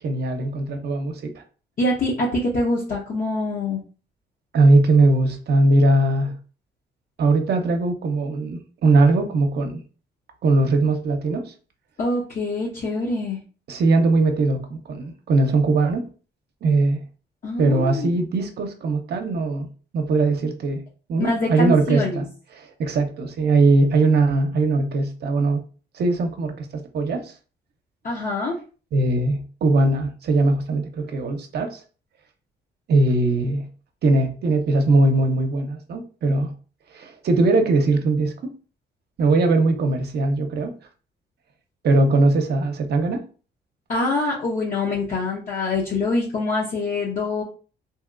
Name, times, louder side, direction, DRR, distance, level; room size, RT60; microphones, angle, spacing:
voice 1, 0.0-1.3 4.5-6.3 7.2-9.8 10.4-11.5 13.7-16.0 16.6-17.0 17.6-19.7 19.9-20.8 21.1-22.3 22.5-25.6 25.9-27.3 28.9-31.8 32.9-33.6 34.0-36.5 36.9-38.5 39.2-40.7 41.8-43.2, right 2 dB, 60° right, 0.7 m, -20 dB
voice 2, 1.8-3.8 12.0-13.4 17.4-18.1 21.2-22.2 28.0-28.6 43.9-47.4, left 2 dB, 50° left, 0.8 m, -24 dB
2.8 x 2.8 x 2.4 m
cardioid pair, 85°, 19 cm